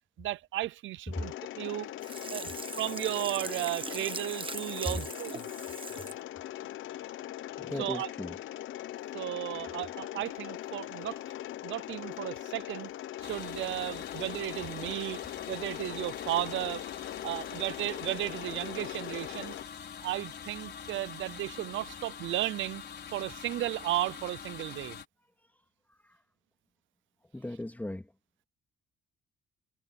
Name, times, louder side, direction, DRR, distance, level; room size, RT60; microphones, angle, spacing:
voice 1, 0.2-1.9 2.3-2.5 2.8-5.4 7.8-8.1 9.1-11.2 11.6-12.9 13.2-15.2 15.5-16.8 17.2-19.5 20.0-22.8 23.1-25.0, right 15 dB, 75° right, 0.7 m, -34 dB
Mechanisms, 1.1-19.6, left 13 dB, 80° left, 1.0 m, -41 dB
Sink (filling or washing), 2.0-6.2 6.7-6.8, right 4 dB, 25° right, 1.3 m, -41 dB
voice 2, 7.6-8.4 17.2-17.5 25.4-26.2 27.3-28.1, left 1 dB, 10° left, 3.2 m, -40 dB
sound 1, 13.2-25.1, left 7 dB, 55° left, 4.7 m, -44 dB
cardioid pair, 90°, 20 cm